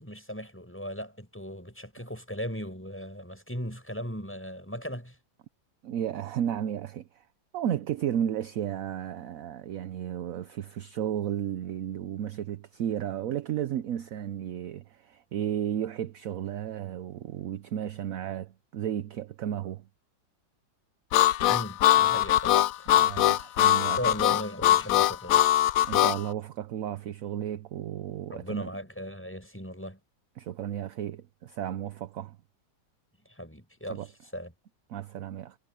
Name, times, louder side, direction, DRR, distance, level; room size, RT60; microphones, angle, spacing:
voice 1, 0.0-5.2 21.5-23.5 23.9-25.6 28.3-30.0 33.3-34.5, equal, 5° left, 7.0 m, -38 dB
voice 2, 5.8-7.2 7.5-19.8 22.9-24.0 25.9-28.7 30.4-32.4 33.9-34.1 34.9-35.6, right 10 dB, 65° right, 0.9 m, -33 dB
Harmonica, 21.1-26.2, left 13 dB, 85° left, 0.7 m, -22 dB
omnidirectional pair, 2.1 m